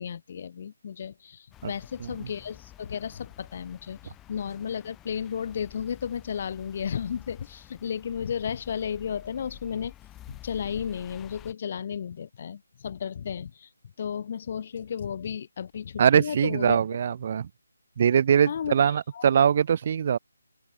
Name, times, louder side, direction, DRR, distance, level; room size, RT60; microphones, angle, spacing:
voice 1, 0.0-9.9 10.3-13.7 14.0-16.8 18.5-19.3, left 7 dB, 30° left, 0.5 m, -33 dB
sound 1, 1.5-11.5, left 13 dB, 10° left, 1.6 m, -50 dB
voice 2, 16.0-17.5 18.0-20.2, right 8 dB, 30° right, 0.6 m, -22 dB
open air
hypercardioid pair, 170°, 0 cm